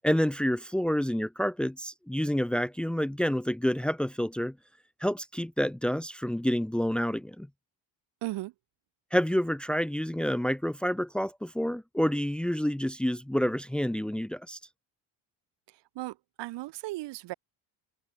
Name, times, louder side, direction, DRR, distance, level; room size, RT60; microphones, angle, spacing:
voice 1, 0.0-4.5 5.0-7.5 9.1-14.6, equal, ahead, 1.6 m, -28 dB
voice 2, 8.2-8.5 16.0-17.3, right 18 dB, 70° right, 2.0 m, -36 dB
cardioid pair, 180°, 44 cm